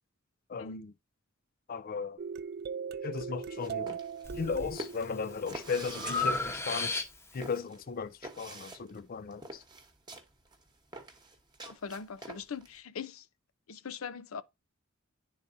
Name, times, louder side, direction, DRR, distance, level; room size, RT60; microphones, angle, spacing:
voice 1, 0.5-0.9 1.7-2.2 3.0-4.0 4.4-7.1 7.3-9.6, left 5 dB, 45° left, 0.4 m, -36 dB
sound 1, 2.2-6.6, right 6 dB, 50° right, 0.4 m, -40 dB
sound 2, 3.4-12.7, right 2 dB, 20° right, 1.1 m, -46 dB
Breathing, 4.2-4.7 5.2-7.5, left 3 dB, 15° left, 1.0 m, -34 dB
voice 2, 11.6-13.3 13.7-14.4, left 6 dB, 85° left, 0.6 m, -41 dB
10.5 x 3.9 x 2.6 m
head